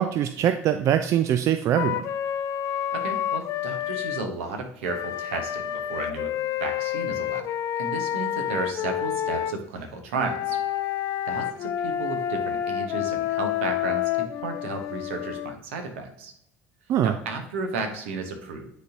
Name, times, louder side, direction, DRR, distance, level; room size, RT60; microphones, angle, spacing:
voice 1, 0.0-2.0 16.9-17.1, right 10 dB, 45° right, 9 dB, 0.4 m, -22 dB
Wind instrument woodwind instrument, 1.8-4.3 4.9-9.6 10.2-15.6, left 11 dB, 45° left, 0.4 m, -29 dB
voice 2, 2.9-6.3 6.6-7.5 7.8-10.6 11.3-16.3 17.0-18.7, right 4 dB, 70° right, 5 dB, 1.0 m, -33 dB
9.5 x 4.2 x 2.7 m, 0.73 s
figure-of-eight pair, 65°, 7 cm